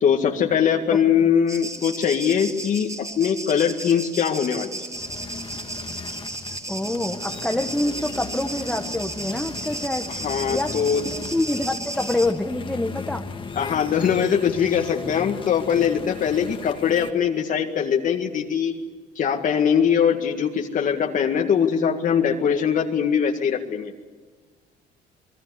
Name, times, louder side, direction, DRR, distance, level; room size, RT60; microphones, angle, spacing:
voice 1, 0.0-4.9 10.2-11.1 13.6-18.7 19.2-23.9, left 7 dB, 50° left, 2 dB, 1.9 m, -22 dB
sound 1, 1.5-12.3, right 2 dB, 20° right, 3.7 m, -34 dB
sound 2, 4.9-17.1, left 4 dB, 30° left, 1.9 m, -37 dB
voice 2, 6.7-10.1 10.5-10.8 11.0-13.2, left 1 dB, 5° left, 2 dB, 1.4 m, -26 dB
28.0 x 20.5 x 8.2 m, 1.5 s
cardioid pair, 110°, 17 cm